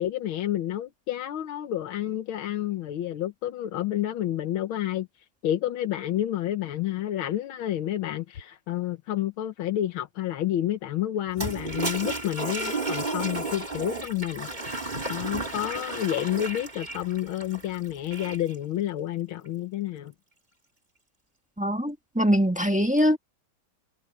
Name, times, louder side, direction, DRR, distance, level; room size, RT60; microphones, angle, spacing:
voice 1, 0.0-5.1 5.4-20.1, left 12 dB, 80° left, 1.8 m, -30 dB
Toilet flush, 11.3-18.5, right 2 dB, 20° right, 3.4 m, -33 dB
voice 2, 21.6-23.2, equal, 5° right, 1.3 m, -23 dB
omnidirectional pair, 2.3 m